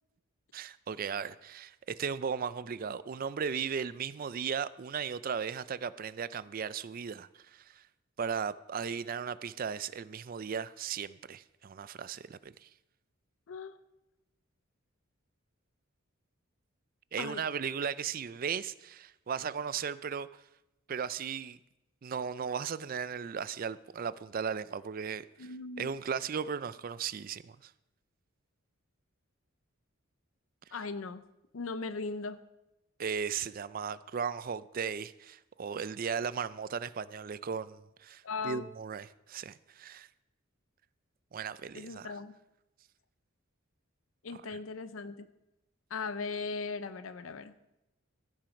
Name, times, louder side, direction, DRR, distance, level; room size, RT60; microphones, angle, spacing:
voice 1, 0.5-7.8 8.2-12.7 17.1-20.4 20.9-21.6 22.0-27.7 33.0-40.1 41.3-42.2 44.3-44.6, right 6 dB, 45° right, 0.4 m, -36 dB
voice 2, 13.5-13.8 17.2-17.4 25.4-25.9 30.7-31.2 31.5-32.4 38.2-38.7 41.7-42.4 44.2-45.3 45.9-47.5, left 4 dB, 80° left, 0.6 m, -38 dB
15.5 x 7.5 x 5.2 m
head